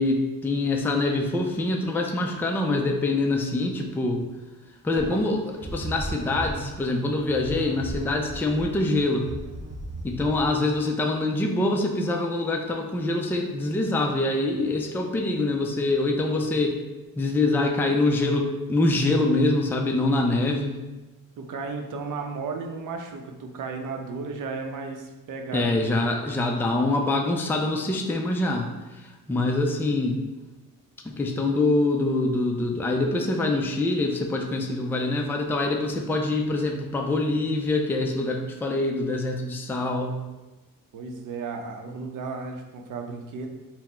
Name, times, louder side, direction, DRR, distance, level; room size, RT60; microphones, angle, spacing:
voice 1, 0.0-4.2 4.8-9.3 10.0-16.8 17.2-20.8 25.5-28.7 29.0-30.2 31.0-40.2, left 2 dB, 5° left, 2 dB, 0.3 m, -25 dB
sound 1, 5.0-10.8, right 1 dB, 20° right, 0.7 m, -37 dB
voice 2, 21.4-25.7 40.9-43.5, right 4 dB, 70° right, 3 dB, 0.7 m, -34 dB
4.1 x 2.1 x 4.3 m, 1.1 s
cardioid pair, 115°, 33 cm